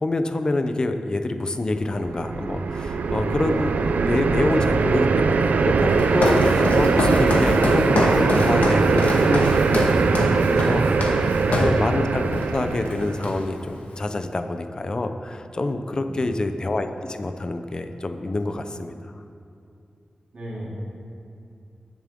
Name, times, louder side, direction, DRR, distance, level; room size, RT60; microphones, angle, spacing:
voice 1, 0.0-10.9 11.1-19.2, left 2 dB, 30° left, 7 dB, 0.6 m, -27 dB
sound 1, 1.9-13.3, right 4 dB, 80° right, 0.5 m, -21 dB
Walk footsteps, 5.9-11.8 12.3-12.6 12.9-13.7, left 2 dB, 90° left, 1.6 m, -25 dB
voice 2, 15.9-16.3 20.3-20.7, right 1 dB, 45° right, -7 dB, 3.1 m, -39 dB
20.0 x 7.3 x 3.7 m, 2.5 s
wide cardioid pair, 155°, 3 cm